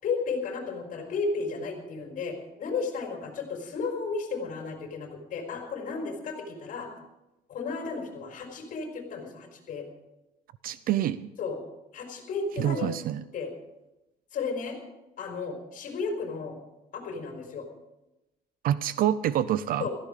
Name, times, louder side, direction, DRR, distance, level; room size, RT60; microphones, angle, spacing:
voice 1, 0.0-6.9 7.5-9.9 11.4-11.6 11.9-12.9 13.3-13.5 14.3-14.8 15.2-16.6 16.9-17.7 19.8-19.9, left 4 dB, 55° left, 2 dB, 4.4 m, -33 dB
voice 2, 10.6-11.3 12.6-13.2 18.6-19.9, right 11 dB, 60° right, 15 dB, 0.6 m, -26 dB
17.0 x 14.5 x 5.0 m, 0.98 s
cardioid pair, 150°, 17 cm